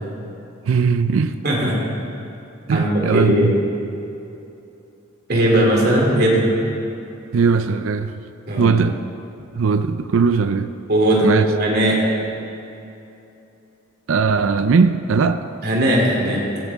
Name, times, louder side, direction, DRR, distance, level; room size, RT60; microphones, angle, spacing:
voice 1, 0.7-1.4 2.7-3.6 7.3-8.2 8.6-9.0 9.5-10.7 11.2-11.5 14.1-15.4, right 5 dB, 80° right, 10 dB, 0.4 m, -19 dB
voice 2, 1.4-1.8 2.7-3.5 5.3-6.4 8.5-8.7 10.9-12.0 15.6-16.4, right 1 dB, 50° right, -2 dB, 2.9 m, -18 dB
16.0 x 13.5 x 3.6 m, 2.8 s
head